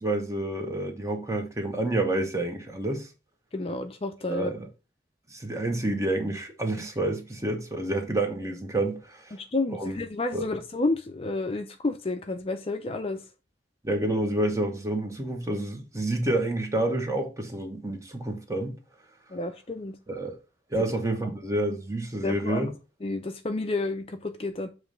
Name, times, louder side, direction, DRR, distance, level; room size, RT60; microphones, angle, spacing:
voice 1, 0.0-3.1 4.3-4.7 5.3-9.3 9.7-10.0 10.3-10.5 13.8-18.8 20.1-20.4 20.7-22.7, right 1 dB, 15° right, 1.1 m, -29 dB
voice 2, 3.5-4.5 9.3-13.2 19.3-20.0 22.2-22.7 23.0-24.7, left 2 dB, 35° left, 0.5 m, -30 dB
7.1 x 3.2 x 5.1 m
head